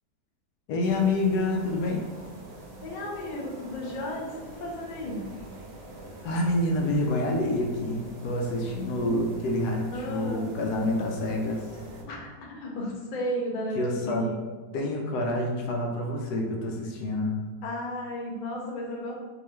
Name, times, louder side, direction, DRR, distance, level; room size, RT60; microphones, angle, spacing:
voice 1, 0.7-2.0 6.2-11.6 13.7-14.3 14.7-17.4, left 1 dB, 80° left, 1 dB, 1.1 m, -27 dB
sound 1, 0.8-12.0, right 1 dB, 90° right, 1.4 m, -45 dB
voice 2, 2.8-5.3 9.9-10.5 12.1-14.4 17.6-19.1, left 1 dB, 60° left, -2 dB, 0.5 m, -34 dB
3.7 x 2.7 x 3.0 m, 1.3 s
omnidirectional pair, 1.8 m